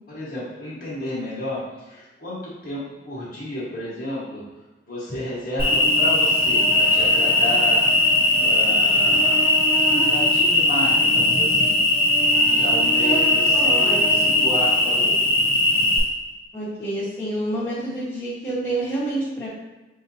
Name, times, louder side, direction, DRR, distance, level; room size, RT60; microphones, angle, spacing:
voice 1, 0.1-4.4 4.8-8.1 8.4-9.5 10.1-11.8 12.4-15.2, left 1 dB, 50° left, -8 dB, 1.4 m, -32 dB
Cricket, 5.6-16.0, left 1 dB, 30° left, 1.4 m, -19 dB
voice 2, 13.5-14.3 16.5-19.5, right 1 dB, 15° left, -11 dB, 1.4 m, -28 dB
5.5 x 2.8 x 2.7 m, 1.1 s
head